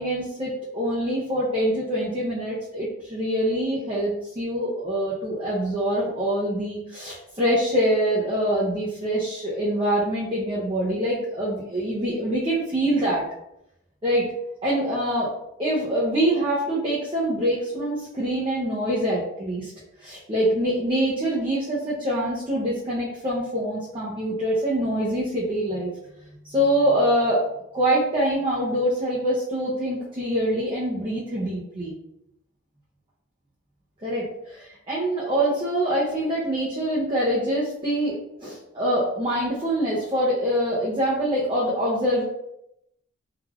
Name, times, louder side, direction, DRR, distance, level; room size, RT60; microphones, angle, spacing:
voice 1, 0.0-13.2 14.0-14.3 14.6-15.3 15.6-19.7 20.0-25.9 26.4-27.4 27.7-31.9 34.0-42.2, right 1 dB, 25° right, -6 dB, 0.5 m, -25 dB
3.2 x 2.4 x 2.3 m, 0.82 s
head